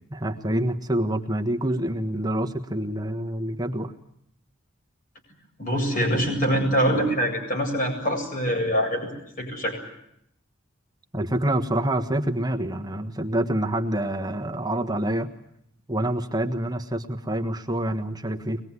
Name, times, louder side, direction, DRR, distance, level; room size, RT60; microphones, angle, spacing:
voice 1, 0.1-3.9 11.1-15.3 15.9-18.6, right 1 dB, 20° right, 5 dB, 1.4 m, -27 dB
voice 2, 5.6-9.1 9.4-9.8, equal, 40° left, 2 dB, 7.9 m, -24 dB
23.5 x 21.0 x 9.7 m, 0.75 s
head